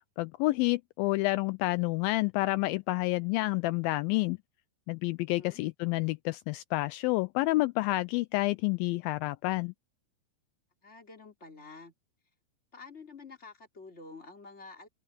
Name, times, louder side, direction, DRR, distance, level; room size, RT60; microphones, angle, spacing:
voice 1, 0.2-4.4 4.9-9.7, left 20 dB, 85° left, 2.1 m, -29 dB
voice 2, 10.8-11.9 12.7-14.9, left 4 dB, 15° left, 3.4 m, -49 dB
open air
omnidirectional pair, 4.6 m